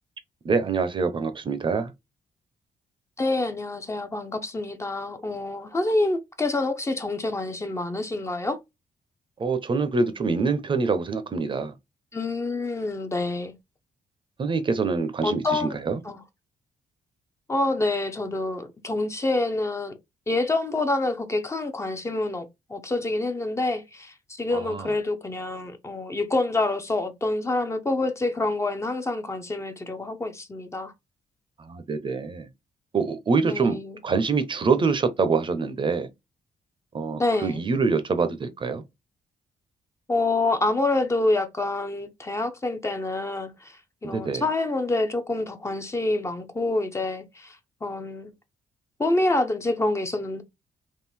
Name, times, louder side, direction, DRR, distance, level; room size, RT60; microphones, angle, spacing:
voice 1, 0.4-1.9 9.4-11.7 14.4-16.0 24.5-24.9 31.6-32.5 32.9-33.8 34.0-36.1 36.9-38.8 44.0-44.4, right 4 dB, 35° right, 0.7 m, -25 dB
voice 2, 3.2-8.6 12.1-13.5 15.2-15.8 16.0-16.2 17.5-19.9 20.3-22.4 22.7-30.9 33.4-34.0 37.2-37.7 40.1-43.7 44.0-47.6 47.8-48.3 49.0-50.4, left 2 dB, 20° left, 0.7 m, -27 dB
3.7 x 2.6 x 4.2 m
cardioid pair, 120°, 14 cm